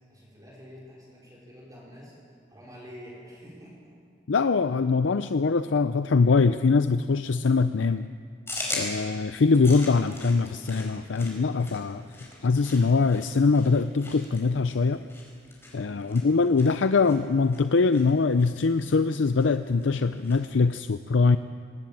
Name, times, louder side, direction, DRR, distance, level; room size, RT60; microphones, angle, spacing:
voice 1, 0.1-2.1 2.5-4.0 15.8-16.1, equal, 20° right, -5 dB, 4.9 m, -47 dB
voice 2, 4.3-8.1 8.7-12.1 12.4-15.0 15.7-21.4, left 4 dB, 75° left, 11 dB, 0.5 m, -23 dB
sound 1, 8.5-20.5, left 2 dB, 15° left, 5.0 m, -41 dB
20.0 x 18.0 x 8.7 m, 2.1 s
head